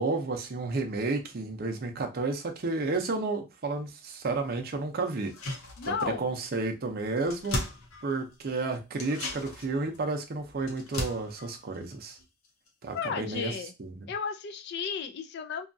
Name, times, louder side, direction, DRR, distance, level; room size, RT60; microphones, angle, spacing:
voice 1, 0.0-5.3 5.9-7.6 8.0-12.2 12.8-13.5 13.8-14.1, right 3 dB, 45° right, 0.5 m, -31 dB
sound 1, 5.2-6.3 6.6-6.7 7.0-8.5 8.9-12.7 13.0-13.1, left 2 dB, 80° left, 0.8 m, -38 dB
voice 2, 5.8-6.3 12.9-13.7 14.1-15.7, left 6 dB, 50° left, 0.4 m, -33 dB
2.7 x 2.3 x 2.5 m
head